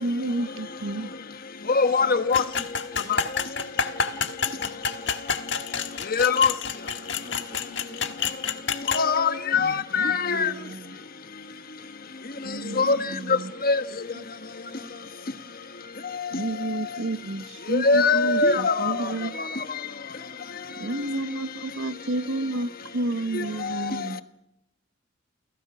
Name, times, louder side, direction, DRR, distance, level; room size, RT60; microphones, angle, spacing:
voice 1, 0.0-1.1 9.5-10.9 12.4-13.5 16.3-19.3 20.8-24.2, right 2 dB, 75° right, 1.0 m, -31 dB
voice 2, 1.8-2.4 6.2-6.5 9.0-9.7 10.0-10.5 12.8-13.0 13.7-13.8 17.8-18.9, left 4 dB, 50° left, 1.3 m, -21 dB
sound 1, 2.3-9.1, left 6 dB, 65° left, 1.5 m, -28 dB
voice 3, 2.9-3.3 7.2-8.2 12.7-13.1 14.1-14.2 14.6-14.9, right 1 dB, 55° right, 2.6 m, -45 dB
29.5 x 17.0 x 6.0 m
head